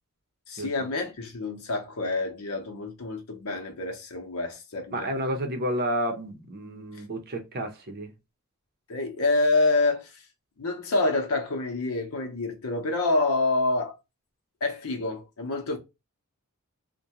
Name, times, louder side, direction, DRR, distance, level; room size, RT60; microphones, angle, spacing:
voice 1, 0.5-5.1 6.9-7.0 8.9-10.3 10.6-14.0 14.6-15.8, left 2 dB, 75° left, 0.7 m, -27 dB
voice 2, 4.9-8.1, right 1 dB, 45° right, 0.6 m, -30 dB
2.5 x 2.2 x 2.8 m
head